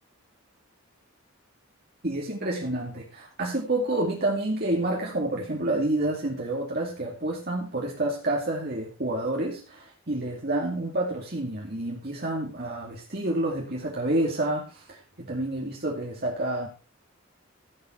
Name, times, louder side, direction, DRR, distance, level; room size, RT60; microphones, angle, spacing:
voice 1, 2.0-16.7, right 1 dB, 45° right, -2 dB, 2.5 m, -29 dB
15.5 x 7.8 x 4.6 m, 0.36 s
head